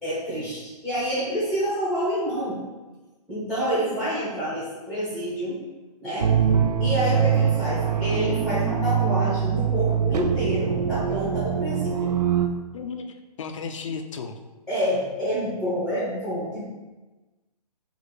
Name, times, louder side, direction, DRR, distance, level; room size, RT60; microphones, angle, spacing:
voice 1, 0.0-2.6 3.3-5.6 6.0-6.3 6.8-12.2 14.7-16.6, equal, ahead, -9 dB, 0.8 m, -28 dB
sound 1, 6.2-12.5, right 7 dB, 70° right, 0.5 m, -23 dB
voice 2, 12.7-14.4, left 5 dB, 50° left, 6 dB, 0.5 m, -34 dB
4.3 x 2.5 x 4.8 m, 1.2 s
hypercardioid pair, 160°, 21 cm